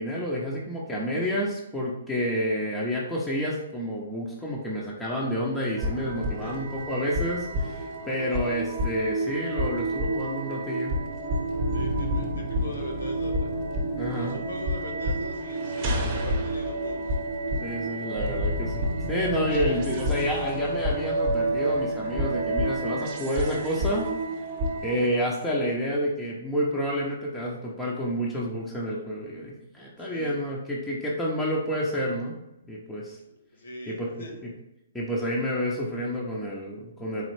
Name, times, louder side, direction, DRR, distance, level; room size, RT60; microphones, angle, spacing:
voice 1, 0.0-10.9 14.0-14.4 17.6-24.1 24.8-32.4 32.7-33.2 33.9-34.1 34.9-37.3, equal, 5° left, -6 dB, 0.6 m, -29 dB
sound 1, 5.8-25.0, right 1 dB, 35° right, 0.9 m, -29 dB
voice 2, 11.7-13.5 14.0-17.2 30.1-30.5 33.2-34.4, left 1 dB, 80° left, 1 dB, 1.3 m, -40 dB
4.1 x 3.5 x 3.2 m, 0.89 s
hypercardioid pair, 155°, 0 cm